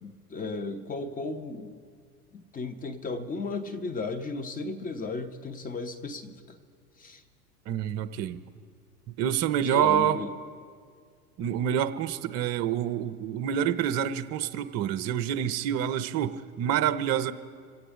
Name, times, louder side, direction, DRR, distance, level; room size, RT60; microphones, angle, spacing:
voice 1, 0.0-1.7 2.3-6.6 7.0-7.2 9.7-10.3, left 3 dB, 15° left, 11 dB, 1.0 m, -35 dB
voice 2, 7.7-8.4 9.2-10.2 11.4-17.3, right 10 dB, 30° right, 11 dB, 0.7 m, -27 dB
26.5 x 8.8 x 5.0 m, 2.1 s
figure-of-eight pair, 90°, 49 cm